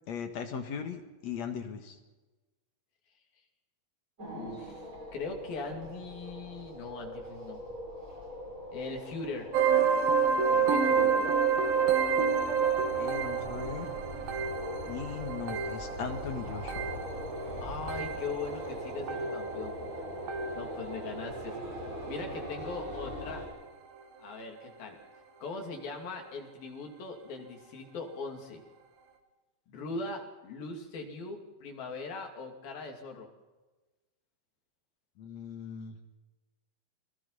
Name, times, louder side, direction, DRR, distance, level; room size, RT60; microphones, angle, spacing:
voice 1, 0.1-2.0 12.9-13.9 14.9-16.9 35.2-36.0, left 6 dB, 55° left, 6 dB, 2.5 m, -38 dB
voice 2, 4.2-4.9 5.1-7.6 8.7-9.5 10.5-11.3 17.6-19.7 20.5-21.6 22.1-23.4 24.2-25.0 25.4-28.6 29.7-33.3, left 3 dB, 70° left, 2 dB, 4.6 m, -40 dB
sound 1, 4.2-23.5, equal, 20° right, 6.5 m, -41 dB
sound 2, 9.5-21.0 21.3-21.7 22.3-22.5 22.8-22.9 23.5-23.6, right 6 dB, 70° right, 3.5 m, -29 dB
29.0 x 22.0 x 4.2 m, 1.2 s
omnidirectional pair, 4.3 m